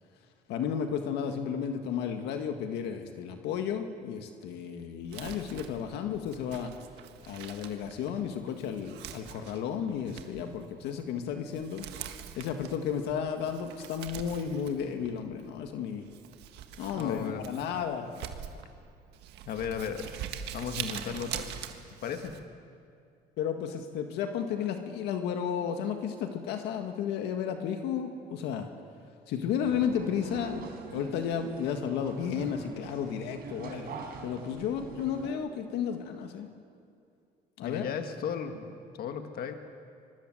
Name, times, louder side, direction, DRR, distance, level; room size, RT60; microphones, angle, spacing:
voice 1, 0.5-6.7 7.2-11.8 12.3-16.1 16.8-18.6 23.4-28.7 29.3-30.7 30.9-34.0 34.2-36.5 37.6-37.8, left 8 dB, 85° left, 5 dB, 1.8 m, -33 dB
Crumpling crinkling, 5.0-22.4, right 9 dB, 85° right, 1.7 m, -44 dB
voice 2, 17.0-17.5 19.5-20.2 20.5-21.6 22.0-22.4 37.6-39.5, left 7 dB, 65° left, 6 dB, 1.9 m, -35 dB
sound 1, 29.6-35.3, right 5 dB, 65° right, 4.6 m, -43 dB
25.5 x 21.5 x 7.9 m, 2.4 s
cardioid pair, 110°, 17 cm